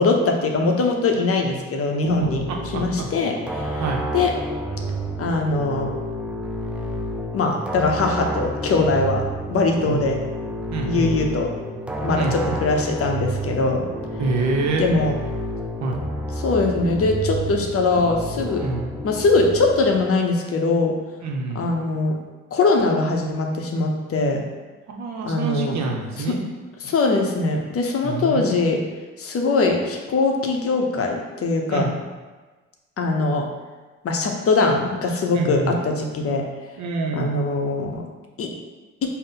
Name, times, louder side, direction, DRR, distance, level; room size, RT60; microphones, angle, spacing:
voice 1, 0.0-2.4 2.7-3.8 4.1-4.3 5.2-5.9 7.3-10.2 10.8-11.5 12.0-13.9 14.8-15.1 16.4-18.7 19.0-20.9 21.5-22.2 22.5-24.4 25.2-25.8 26.2-26.4 26.8-28.8 29.2-31.9 33.0-33.5 34.0-36.4 37.1-38.0 38.4-38.5, left 3 dB, 45° left, 2 dB, 0.6 m, -21 dB
sound 1, 2.0-20.1, right 1 dB, 5° right, 0.4 m, -30 dB
voice 2, 2.2-3.1 3.8-4.0 9.9-10.0 10.7-11.1 12.2-12.6 14.2-14.8 15.8-16.0 18.6-18.9 21.2-21.7 24.9-26.4 28.0-28.6 31.7-31.9 35.3-35.8 36.8-37.3, right 3 dB, 55° right, 1 dB, 0.7 m, -26 dB
3.8 x 2.1 x 3.8 m, 1.3 s
supercardioid pair, 60°, 33 cm